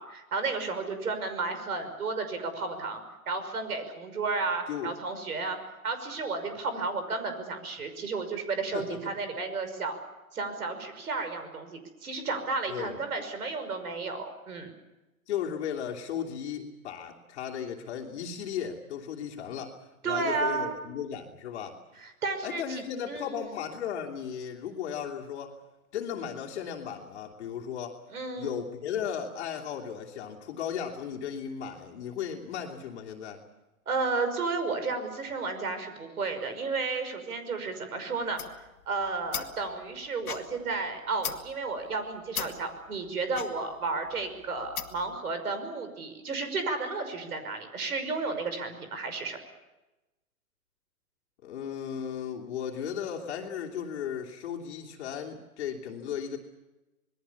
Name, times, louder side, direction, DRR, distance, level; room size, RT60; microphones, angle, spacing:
voice 1, 0.0-5.6 5.8-10.0 10.3-14.7 20.0-20.8 22.0-22.8 23.1-23.5 28.1-28.6 33.9-38.4 38.9-49.4, right 4 dB, 80° right, 9 dB, 5.8 m, -32 dB
voice 2, 8.7-9.1 12.7-13.0 15.3-21.8 22.4-25.6 25.9-28.0 28.4-33.4 51.4-56.4, left 8 dB, 50° left, 0 dB, 2.9 m, -36 dB
sound 1, 38.2-45.2, left 8 dB, 75° left, 2.3 m, -40 dB
26.5 x 21.0 x 7.1 m, 1.0 s
hypercardioid pair, 145°, 44 cm